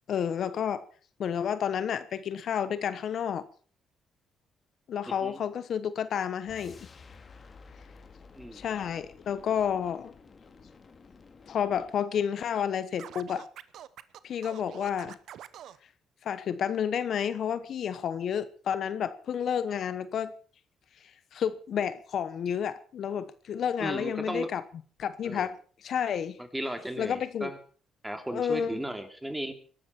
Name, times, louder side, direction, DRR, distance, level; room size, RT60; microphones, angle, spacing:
voice 1, 0.1-0.8 1.2-3.4 4.9-6.9 8.5-10.1 11.5-13.5 14.2-15.2 16.2-20.3 21.3-24.6 25.0-26.4 27.0-27.5 28.3-28.8, left 8 dB, 65° left, 1.0 m, -30 dB
voice 2, 5.1-5.4 8.3-8.6 23.8-24.5 25.2-25.5 26.4-27.6 28.0-29.5, right 1 dB, 5° right, 2.9 m, -35 dB
sound 1, 6.4-12.1, left 4 dB, 40° left, 2.3 m, -52 dB
Scratching (performance technique), 13.0-15.8, right 10 dB, 75° right, 0.9 m, -45 dB
23.0 x 13.0 x 4.5 m
cardioid pair, 90°, 0 cm